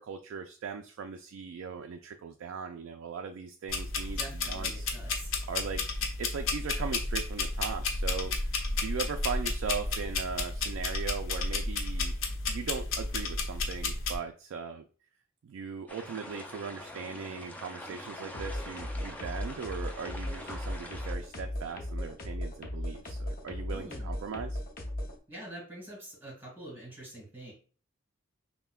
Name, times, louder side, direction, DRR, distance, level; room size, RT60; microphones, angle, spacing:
voice 1, 0.0-4.9 5.5-5.8 6.2-8.3 8.8-12.1 12.5-14.8 15.4-24.6, right 6 dB, 80° right, 5 dB, 0.3 m, -39 dB
sound 1, 3.7-14.2, left 3 dB, 90° left, 0.6 m, -32 dB
voice 2, 4.2-5.3 23.7-24.1 25.3-27.5, right 1 dB, 10° right, -2 dB, 1.9 m, -45 dB
sound 2, 15.9-21.1, left 1 dB, 10° left, 0.4 m, -45 dB
sound 3, 18.3-25.1, left 1 dB, 45° left, 0.7 m, -36 dB
5.5 x 2.1 x 2.3 m, 0.39 s
head